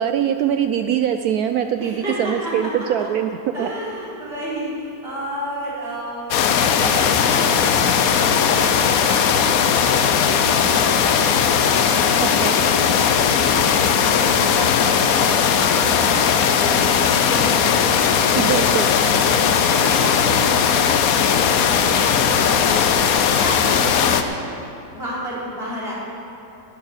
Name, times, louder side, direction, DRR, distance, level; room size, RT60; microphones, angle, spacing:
voice 1, 0.0-3.3 3.6-3.7 12.2-12.6 18.3-18.9, right 9 dB, 70° right, 7 dB, 0.9 m, -22 dB
voice 2, 1.8-2.7 3.0-3.1 3.5-6.3 6.8-18.7 19.2-24.3 24.9-25.9, equal, 35° right, -7 dB, 3.9 m, -32 dB
sound 1, 6.3-24.2, left 7 dB, 65° left, 1.0 m, -18 dB
11.5 x 8.7 x 9.5 m, 2.9 s
omnidirectional pair, 1.9 m